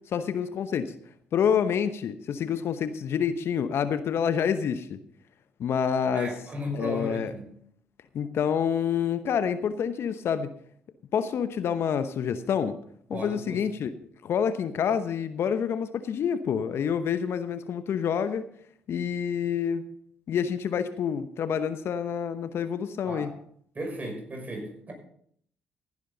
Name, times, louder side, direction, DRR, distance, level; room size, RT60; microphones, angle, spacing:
voice 1, 0.1-0.9 1.3-5.0 5.6-6.4 6.7-7.3 8.1-10.5 11.1-12.7 13.1-13.9 14.2-18.4 18.9-19.9 20.3-23.3, left 7 dB, 60° left, 12 dB, 0.9 m, -27 dB
voice 2, 6.1-7.5 13.1-13.7 23.0-23.3 23.7-24.9, equal, 35° right, 2 dB, 6.1 m, -35 dB
16.0 x 10.5 x 4.0 m, 0.63 s
hypercardioid pair, 50°, 5 cm